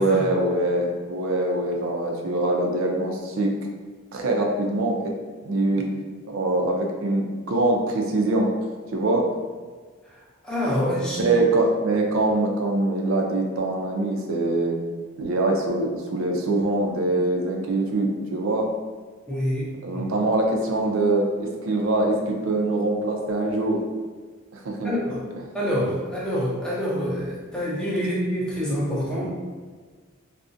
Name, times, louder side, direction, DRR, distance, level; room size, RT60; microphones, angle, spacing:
voice 1, 0.0-3.5 4.1-5.1 5.4-5.9 6.2-8.5 8.9-9.3 11.2-14.8 15.2-18.7 19.8-23.8 24.5-25.0, right 2 dB, 70° right, 1 dB, 0.4 m, -23 dB
voice 2, 10.4-11.3 19.3-20.1 24.8-25.2 25.5-29.3, equal, 5° left, -7 dB, 0.5 m, -26 dB
2.4 x 2.1 x 2.5 m, 1.5 s
head